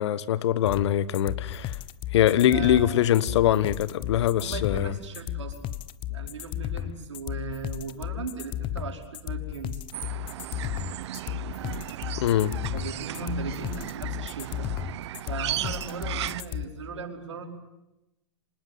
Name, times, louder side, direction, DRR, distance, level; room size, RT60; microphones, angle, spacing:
voice 1, 0.0-1.8 2.1-4.9 12.2-12.5, left 11 dB, 70° left, 17 dB, 1.3 m, -23 dB
sound 1, 0.6-16.6, left 13 dB, 35° left, 1.1 m, -34 dB
voice 2, 2.5-3.1 4.4-5.7 6.1-9.8 12.7-14.7 15.3-17.5, right 5 dB, 90° right, 2 dB, 5.0 m, -38 dB
sound 2, 9.9-16.4, right 13 dB, 70° right, 0.9 m, -36 dB
25.5 x 20.0 x 9.5 m, 0.92 s
hypercardioid pair, 120°, 15 cm